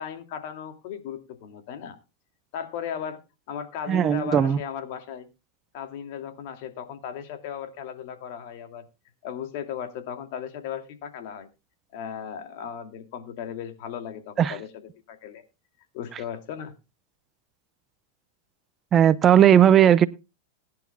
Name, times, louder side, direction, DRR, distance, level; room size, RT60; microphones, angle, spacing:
voice 1, 0.0-2.0 2.5-3.2 3.5-5.3 5.7-8.8 9.2-11.5 11.9-15.4 15.9-16.7, left 8 dB, 55° left, 2.6 m, -36 dB
voice 2, 3.9-4.6 14.4-14.5 18.9-20.1, right 10 dB, 25° right, 0.6 m, -17 dB
20.5 x 10.5 x 2.3 m
supercardioid pair, 135°, 0 cm